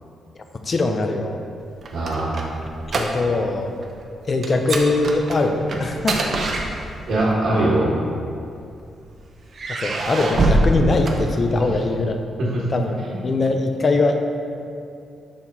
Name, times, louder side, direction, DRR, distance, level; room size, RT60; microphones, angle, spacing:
voice 1, 0.6-1.4 2.9-3.7 4.3-6.2 9.7-12.2 12.7-13.0 13.2-14.2, left 3 dB, 40° left, 5 dB, 0.6 m, -21 dB
sound 1, 1.6-3.5 3.8-4.0 4.4-7.2 8.1-8.9 9.5-11.8, right 2 dB, 50° right, 0.7 m, -24 dB
voice 2, 1.9-2.5 7.1-7.9 12.2-12.6 13.0-13.2, right 1 dB, 65° right, -8 dB, 1.5 m, -22 dB
5.7 x 4.2 x 4.6 m, 2.5 s
cardioid pair, 95°, 0 cm